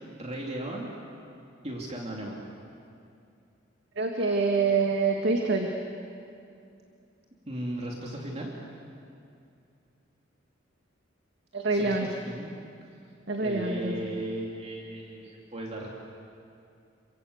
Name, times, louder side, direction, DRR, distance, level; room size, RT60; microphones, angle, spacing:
voice 1, 0.1-0.9 1.6-2.4 7.5-8.5 11.7-12.0 12.3-12.5 13.4-15.9, right 1 dB, 35° right, -2 dB, 2.9 m, -36 dB
voice 2, 4.0-5.7 11.5-12.1 13.3-14.0, right 4 dB, 65° right, 1 dB, 2.1 m, -26 dB
29.0 x 24.5 x 8.2 m, 2.5 s
head